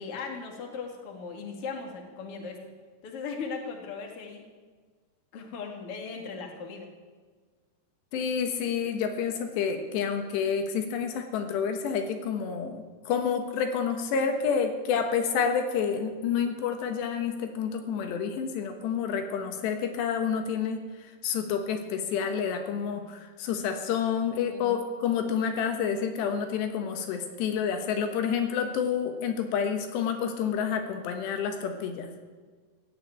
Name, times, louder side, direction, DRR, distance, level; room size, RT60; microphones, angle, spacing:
voice 1, 0.0-2.6 3.0-4.4 5.3-6.9 24.5-24.8, left 5 dB, 40° left, 2 dB, 2.5 m, -38 dB
voice 2, 8.1-32.1, left 7 dB, 85° left, 6 dB, 3.5 m, -29 dB
16.5 x 8.3 x 9.4 m, 1.5 s
omnidirectional pair, 4.8 m